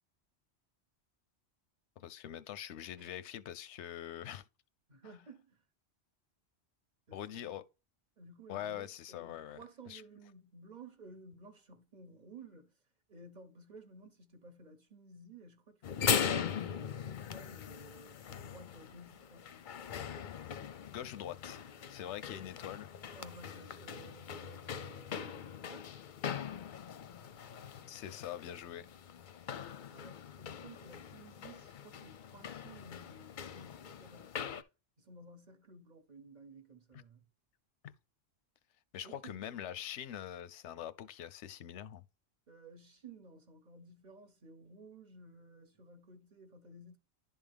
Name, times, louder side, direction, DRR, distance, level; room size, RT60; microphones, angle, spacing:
voice 1, 2.0-4.4 5.0-5.1 7.1-7.6 8.5-10.0 20.9-22.9 27.7-28.9 37.8-37.9 38.9-42.0, left 10 dB, 85° left, 0.9 m, -44 dB
voice 2, 4.9-5.6 7.1-7.6 8.2-12.8 13.1-19.6 23.1-26.1 29.9-34.5 35.0-37.2 39.0-39.6 42.5-47.0, right 2 dB, 45° right, 1.0 m, -55 dB
sound 1, 15.8-34.6, left 7 dB, 55° left, 0.6 m, -40 dB
11.0 x 3.6 x 3.4 m
omnidirectional pair, 1.1 m